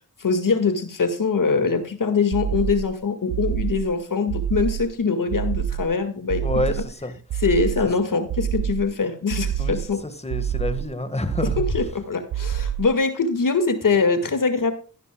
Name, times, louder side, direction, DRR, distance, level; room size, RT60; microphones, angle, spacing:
voice 1, 0.2-6.4 6.8-6.9 7.3-10.0 11.4-14.7, left 4 dB, 60° left, 2.0 m, -23 dB
sound 1, 2.3-2.9 3.3-3.9 4.3-4.9 5.3-5.9 6.3-6.9 7.3-7.9 8.3-8.9 9.3-9.9 10.3-10.9 11.3-11.9 12.3-13.0, right 10 dB, 80° right, 0.5 m, -27 dB
voice 2, 6.4-7.1 9.6-9.8 10.2-11.6, left 2 dB, 15° left, 1.7 m, -27 dB
14.0 x 11.0 x 2.3 m
cardioid pair, 55°, 37 cm